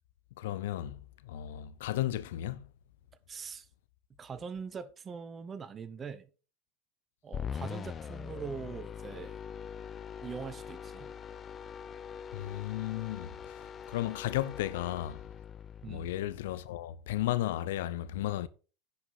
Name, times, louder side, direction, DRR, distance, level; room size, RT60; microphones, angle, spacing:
voice 1, 0.4-2.7 12.3-13.3 13.9-15.2 15.9-18.5, left 14 dB, 70° left, 0.8 m, -34 dB
voice 2, 3.3-3.7 4.2-6.3 7.2-9.4 10.2-11.1 15.8-16.1, right 6 dB, 30° right, 1.0 m, -42 dB
sound 1, 7.3-16.7, left 7 dB, 30° left, 0.8 m, -43 dB
10.5 x 5.5 x 5.5 m
hypercardioid pair, 90°, 0 cm